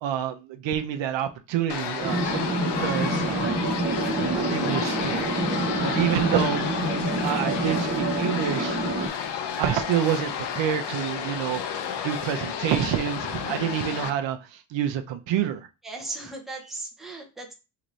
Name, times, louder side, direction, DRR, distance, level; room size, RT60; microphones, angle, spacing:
voice 1, 0.0-3.6 4.2-5.4 5.8-6.6 7.2-8.9 9.6-11.6 12.0-15.7, right 9 dB, 75° right, 0.7 m, -28 dB
sound 1, 1.7-14.1, left 7 dB, 65° left, 0.6 m, -31 dB
sound 2, 2.0-9.1, right 2 dB, 35° right, 1.0 m, -27 dB
voice 2, 5.8-6.2 15.8-17.5, right 2 dB, ahead, 0.6 m, -37 dB
3.9 x 2.6 x 3.1 m
cardioid pair, 150°, 45 cm